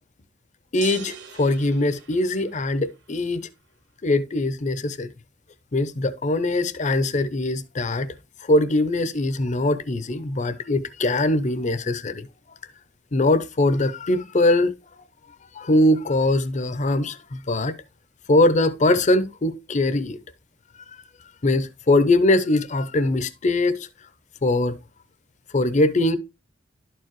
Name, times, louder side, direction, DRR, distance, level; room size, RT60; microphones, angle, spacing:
voice 1, 0.7-3.4 4.0-5.1 5.7-8.1 8.4-12.3 13.1-14.7 15.6-17.7 18.3-20.2 21.4-23.9 24.4-24.8 25.5-26.2, left 2 dB, 40° left, 0.6 m, -21 dB
sound 1, 0.8-2.8, right 6 dB, 65° right, 0.8 m, -41 dB
11.5 x 4.7 x 3.1 m
head